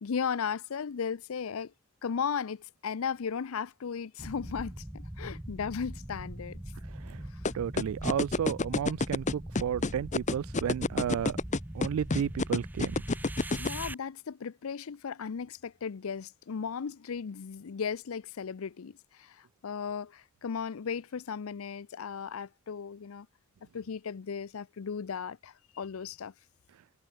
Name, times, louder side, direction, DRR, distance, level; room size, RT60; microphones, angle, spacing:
voice 1, 0.0-1.7 2.0-6.6 7.3-7.4 13.6-23.3 23.7-26.3, left 6 dB, 85° left, 0.5 m, -36 dB
sound 1, 4.2-13.9, right 1 dB, 10° right, 0.7 m, -41 dB
sound 2, 7.4-13.7, left 3 dB, 35° left, 0.8 m, -27 dB
voice 2, 7.5-11.4 11.7-13.0, right 8 dB, 85° right, 0.3 m, -32 dB
head